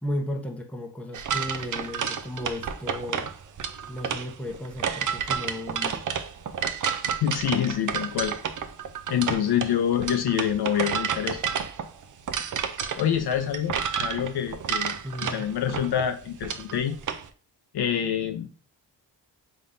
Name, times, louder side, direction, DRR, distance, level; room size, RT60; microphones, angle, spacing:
voice 1, 0.0-3.3 3.9-6.1 15.0-15.4, left 1 dB, 5° left, 0.8 m, -34 dB
sound 1, 1.1-17.2, right 7 dB, 45° right, 0.5 m, -30 dB
voice 2, 7.1-8.3 9.1-11.4 13.0-17.0 17.7-18.5, left 9 dB, 60° left, 0.6 m, -26 dB
3.6 x 3.5 x 2.6 m
supercardioid pair, 55°, 44 cm